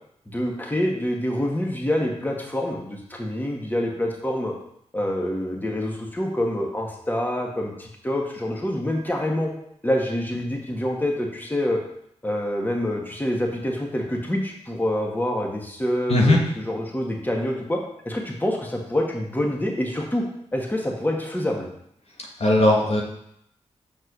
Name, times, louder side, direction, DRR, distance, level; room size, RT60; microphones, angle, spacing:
voice 1, 0.3-4.6 4.9-9.5 9.8-11.8 12.2-20.2 20.5-21.7, left 1 dB, 15° left, 0 dB, 1.8 m, -26 dB
voice 2, 22.4-23.0, left 1 dB, 60° left, -1 dB, 1.5 m, -17 dB
6.6 x 4.5 x 6.2 m, 0.74 s
cardioid pair, 55°, 12 cm